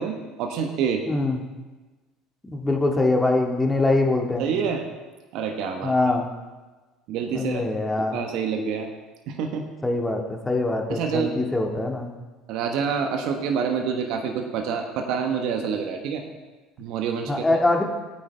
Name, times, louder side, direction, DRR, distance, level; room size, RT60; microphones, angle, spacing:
voice 1, 0.0-1.0 4.4-4.9 5.3-5.9 7.1-7.7 8.1-8.9 9.3-9.7 10.9-11.3 12.5-16.2 16.8-17.3, right 6 dB, 60° right, 4 dB, 1.3 m, -27 dB
voice 2, 1.1-1.4 2.5-4.5 5.8-6.3 7.3-8.2 9.8-12.1 17.3-17.8, left 2 dB, 15° left, 2 dB, 1.9 m, -23 dB
16.5 x 9.1 x 3.4 m, 1.2 s
hypercardioid pair, 65°, 0 cm